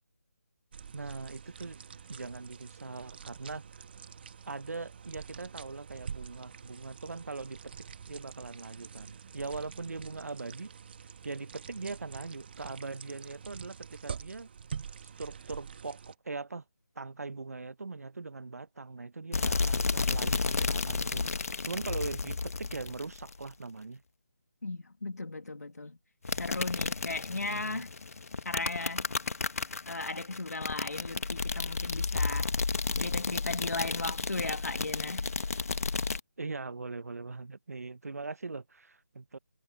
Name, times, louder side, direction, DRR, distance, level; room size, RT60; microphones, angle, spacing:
sound 1, 0.7-16.2, right 6 dB, 40° right, 1.7 m, -46 dB
voice 1, 0.9-1.8 2.1-3.6 4.4-7.7 8.1-10.7 11.2-14.5 15.0-16.6 16.9-21.3 21.6-24.0 27.3-27.8 36.4-39.4, right 3 dB, 75° right, 1.2 m, -41 dB
sound 2, 19.3-23.5 26.2-36.2, left 4 dB, 70° left, 1.8 m, -32 dB
voice 2, 24.6-26.0 26.4-27.9 28.4-29.1 29.9-32.5 32.9-35.3, left 3 dB, 85° left, 2.3 m, -36 dB
figure-of-eight pair, 160°, 8 cm